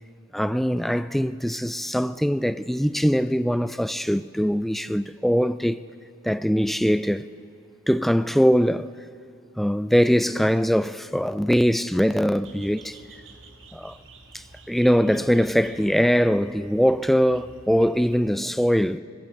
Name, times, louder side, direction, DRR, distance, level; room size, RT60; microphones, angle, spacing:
voice 1, 0.3-5.8 6.2-7.2 7.9-8.9 9.6-13.0 13.7-13.9 14.7-19.0, equal, ahead, 0.3 m, -22 dB
sound 1, 12.4-18.3, right 3 dB, 65° right, 1.6 m, -49 dB
20.0 x 9.2 x 7.8 m
head